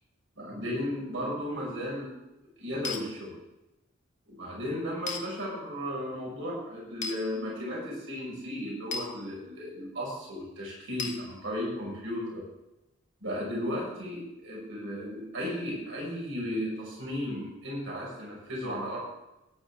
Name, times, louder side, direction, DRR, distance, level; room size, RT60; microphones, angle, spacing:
voice 1, 0.4-2.1 2.6-3.3 4.3-12.4 13.2-19.0, equal, 65° right, -4 dB, 5.8 m, -35 dB
sound 1, 2.8-3.0 5.1-5.2 7.0-7.2 8.9-9.1 11.0-11.2, left 4 dB, 35° left, 1.1 m, -34 dB
17.5 x 10.0 x 3.7 m, 0.95 s
head